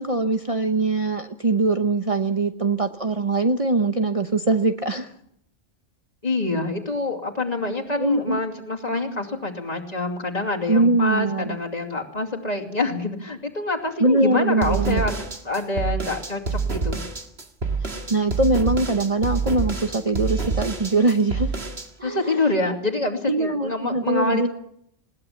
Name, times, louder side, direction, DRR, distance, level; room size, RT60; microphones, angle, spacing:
voice 1, 0.0-5.1 7.9-8.4 10.7-11.6 14.0-15.0 17.8-21.5 22.0-22.4 23.3-24.5, right 2 dB, 30° right, 5 dB, 0.9 m, -22 dB
voice 2, 6.2-15.2 15.4-17.0 22.0-24.5, left 2 dB, 35° left, 1 dB, 2.7 m, -26 dB
sound 1, 14.6-21.9, right 4 dB, 60° right, 2.2 m, -27 dB
20.5 x 18.0 x 7.3 m, 0.72 s
omnidirectional pair, 1.2 m